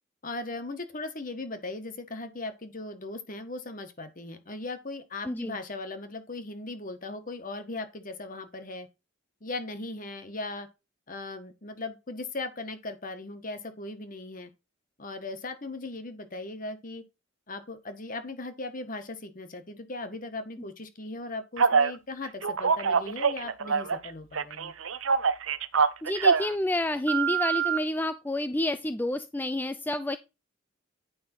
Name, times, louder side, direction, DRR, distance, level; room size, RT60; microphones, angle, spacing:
voice 1, 0.2-8.9 9.4-10.7 11.1-14.5 15.0-17.0 17.5-24.7, left 2 dB, 45° left, 1.5 m, -38 dB
voice 2, 5.3-5.6 26.0-30.2, left 1 dB, 10° left, 0.4 m, -29 dB
Telephone, 21.6-21.9 22.4-24.1 24.3-26.5 27.1-27.8, right 6 dB, 85° right, 0.8 m, -24 dB
9.5 x 5.4 x 4.4 m
head